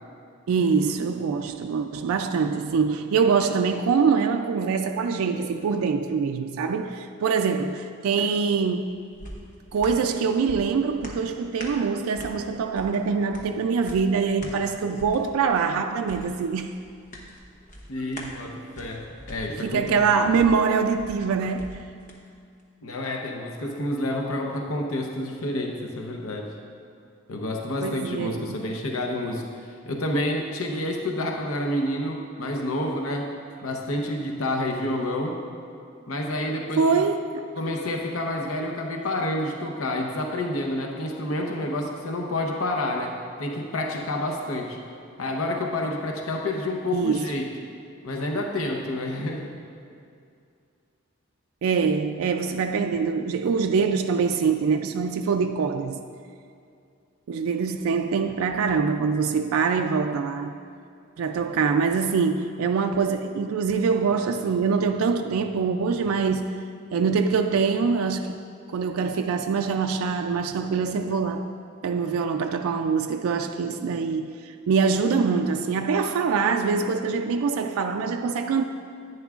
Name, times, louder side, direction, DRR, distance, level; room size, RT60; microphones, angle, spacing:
voice 1, 0.5-8.9 9.7-16.7 19.6-21.8 27.8-28.6 36.8-37.5 46.9-47.3 51.6-56.0 57.3-60.6 61.2-66.6 66.9-68.4 68.7-71.5 71.8-78.6, right 5 dB, 85° right, 0.3 m, -24 dB
sound 1, 8.5-22.2 22.6-22.7, equal, 35° left, 0.9 m, -44 dB
voice 2, 17.9-20.0 22.8-26.5 27.3-29.4 29.9-33.3 33.6-35.4 36.1-37.0 37.6-44.8 45.2-47.5 48.0-49.6, left 1 dB, 85° left, 0.8 m, -29 dB
10.5 x 9.3 x 2.4 m
head